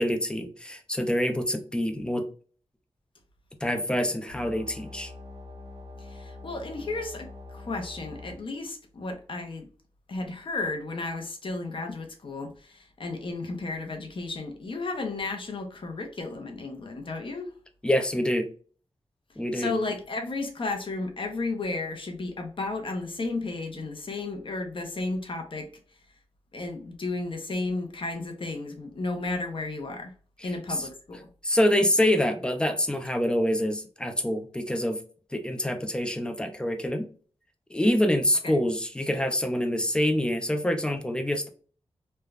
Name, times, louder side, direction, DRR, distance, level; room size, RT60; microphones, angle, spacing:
voice 1, 0.0-2.3 3.6-5.1 17.8-18.5 19.4-19.7 30.4-30.5 31.4-35.0 35.3-37.1 37.7-41.5, left 1 dB, 10° left, 0.5 m, -26 dB
sound 1, 4.3-8.3, left 3 dB, 60° right, 1.2 m, -44 dB
voice 2, 6.0-9.7 10.1-17.5 19.5-25.7 26.5-30.1 30.4-31.3 38.4-38.6, left 3 dB, 50° left, 0.7 m, -33 dB
3.2 x 2.2 x 2.3 m
wide cardioid pair, 110°, 11 cm